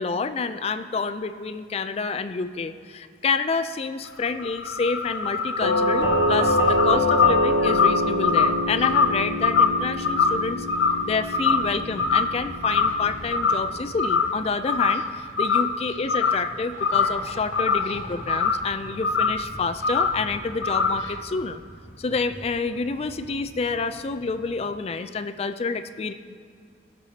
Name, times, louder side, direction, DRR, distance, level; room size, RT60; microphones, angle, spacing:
voice 1, 0.0-10.7 11.0-21.6 22.0-26.1, left 4 dB, 35° left, 11 dB, 0.3 m, -28 dB
sound 1, 4.1-11.7 12.0-12.4 12.6-13.7 14.0-14.3 14.7-15.1 15.4-16.5 16.8-18.7 19.0-19.4 19.8-20.2 20.6-21.1, left 5 dB, 80° left, 0.6 m, -23 dB
Doorbell, 5.6-14.5, equal, 50° right, 1.4 m, -26 dB
sound 2, 11.4-24.8, equal, 10° right, 1.3 m, -45 dB
19.0 x 6.8 x 2.8 m, 2.2 s
head